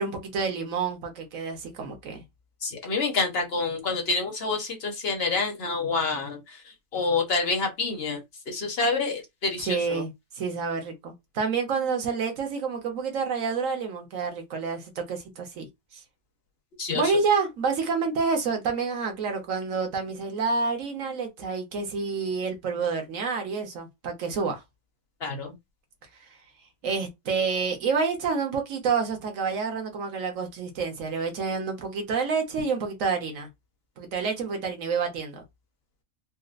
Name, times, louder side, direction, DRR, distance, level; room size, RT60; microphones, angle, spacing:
voice 1, 0.0-2.2 9.6-15.7 15.9-16.0 16.9-24.6 26.8-33.5 34.0-35.4, right 5 dB, 60° right, 1.3 m, -28 dB
voice 2, 2.6-8.2 8.5-10.0 16.8-17.1 25.2-25.5, left 4 dB, 45° left, 1.0 m, -28 dB
4.2 x 2.1 x 2.4 m
omnidirectional pair, 1.6 m